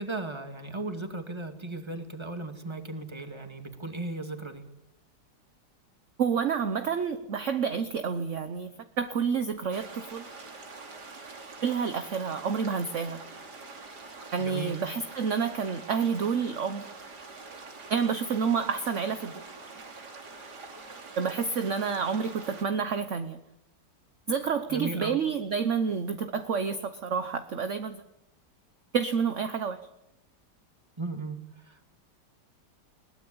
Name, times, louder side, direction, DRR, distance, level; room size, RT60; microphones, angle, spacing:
voice 1, 0.0-4.6 14.4-14.8 24.7-25.2 31.0-31.4 31.6-31.9, right 2 dB, 15° right, 6 dB, 2.3 m, -36 dB
voice 2, 6.2-8.7 9.0-10.3 11.6-13.2 14.3-16.9 17.9-19.4 21.2-23.4 24.3-28.0 28.9-29.8, right 6 dB, 50° right, 9 dB, 1.2 m, -29 dB
sound 1, 9.7-22.7, right 3 dB, 70° right, 3.2 m, -45 dB
21.5 x 19.0 x 8.6 m, 0.90 s
omnidirectional pair, 1.9 m